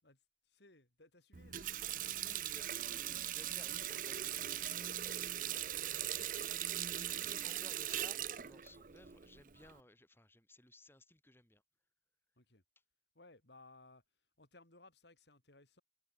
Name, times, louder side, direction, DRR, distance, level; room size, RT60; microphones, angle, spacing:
voice 1, 0.0-2.1 12.4-12.6 13.1-15.8, left 2 dB, 75° left, 5.2 m, -62 dB
Water tap faucet, 1.3-9.8, right 11 dB, 50° right, 0.6 m, -40 dB
voice 2, 2.1-7.0 7.2-11.6, left 1 dB, 15° left, 4.3 m, -61 dB
head